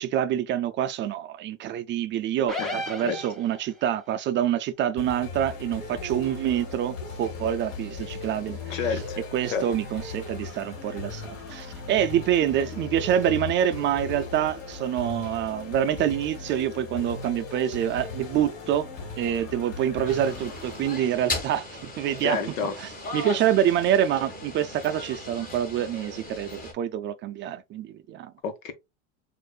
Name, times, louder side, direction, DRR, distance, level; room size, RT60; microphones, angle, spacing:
voice 1, 0.0-9.0 9.3-18.9 19.2-22.4 22.8-28.3, right 10 dB, 30° right, 0.4 m, -26 dB
sound 1, 2.5-3.9, left 1 dB, ahead, 1.5 m, -34 dB
voice 2, 2.6-3.2 8.7-9.2 9.5-9.7 22.2-22.7 28.4-28.7, left 5 dB, 85° left, 1.2 m, -30 dB
sound 2, 5.0-21.0, left 3 dB, 55° left, 2.1 m, -38 dB
sound 3, 20.1-26.7, left 2 dB, 20° left, 1.6 m, -37 dB
6.4 x 2.6 x 2.3 m
supercardioid pair, 110°, 38 cm